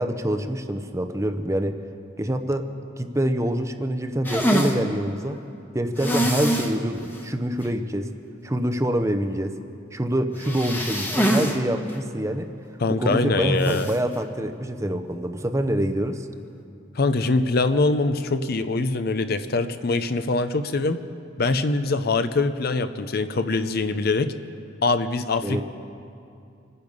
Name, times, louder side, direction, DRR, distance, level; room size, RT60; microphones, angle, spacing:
voice 1, 0.0-1.8 2.2-5.4 5.7-8.1 8.4-9.6 9.9-12.5 13.0-16.3 25.4-25.6, right 1 dB, 15° right, 8 dB, 0.7 m, -26 dB
sound 1, 4.2-4.8 6.0-6.7 7.1-7.2 7.6-7.7 10.4-11.6 11.9-12.0 13.6-14.0, equal, 10° left, 1.2 m, -24 dB
voice 2, 12.8-13.9 17.0-21.0 21.4-24.3 24.8-25.6, left 3 dB, 50° left, 10 dB, 0.6 m, -23 dB
26.5 x 9.8 x 5.4 m, 2.5 s
head